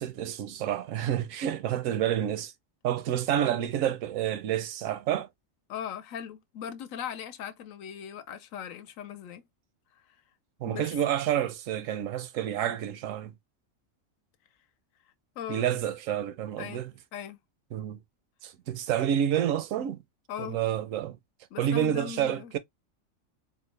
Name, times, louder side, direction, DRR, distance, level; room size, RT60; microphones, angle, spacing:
voice 1, 0.0-2.5 2.8-5.3 10.6-13.3 15.5-16.9 17.7-18.0 18.4-20.0 20.4-21.2 21.6-22.6, right 10 dB, 75° right, 0.9 m, -29 dB
voice 2, 5.7-9.4 10.7-10.8 15.4-15.7 16.6-16.8 17.1-17.4 20.3-20.6 21.5-22.5, left 9 dB, 80° left, 1.0 m, -39 dB
4.2 x 2.0 x 3.1 m
omnidirectional pair, 1.4 m